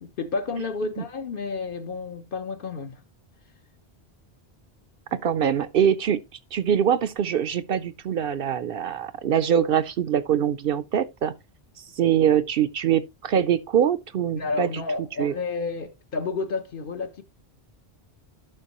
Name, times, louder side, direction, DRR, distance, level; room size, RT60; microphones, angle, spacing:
voice 1, 0.0-3.0 5.1-5.2 14.3-17.2, left 4 dB, 55° left, 1.0 m, -31 dB
voice 2, 5.2-6.2 6.5-11.3 12.0-14.7 15.2-15.3, right 9 dB, 65° right, 0.7 m, -23 dB
12.0 x 5.2 x 2.9 m
omnidirectional pair, 1.1 m